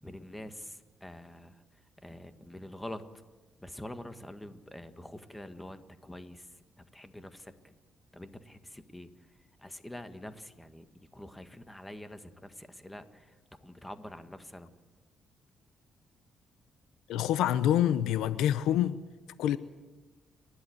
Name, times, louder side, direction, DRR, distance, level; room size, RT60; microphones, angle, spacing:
voice 1, 0.0-1.6 2.0-3.0 3.6-6.5 6.8-7.7 8.1-9.1 9.6-13.3 13.6-14.7, left 1 dB, 10° left, 9 dB, 1.7 m, -46 dB
voice 2, 17.1-19.0 19.4-19.6, left 11 dB, 90° left, 15 dB, 0.8 m, -26 dB
30.0 x 11.5 x 8.0 m, 1.2 s
cardioid pair, 90°, 0 cm